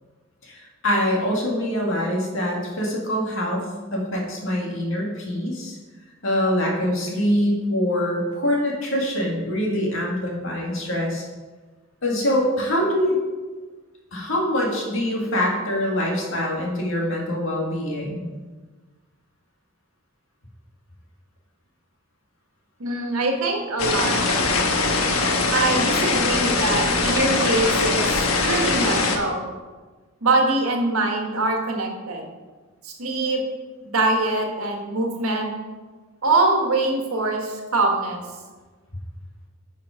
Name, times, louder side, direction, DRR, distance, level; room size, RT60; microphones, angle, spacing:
voice 1, 0.4-5.8 6.2-11.2 12.0-13.2 14.1-18.2, left 1 dB, 65° left, -2 dB, 2.2 m, -24 dB
voice 2, 22.8-24.1 25.5-29.4 30.2-32.3 32.8-33.4 33.9-35.5 36.2-38.2, right 2 dB, 85° right, 2 dB, 1.7 m, -23 dB
sound 1, 23.8-29.2, left 3 dB, 80° left, 1.2 m, -21 dB
10.0 x 5.6 x 5.0 m, 1.3 s
head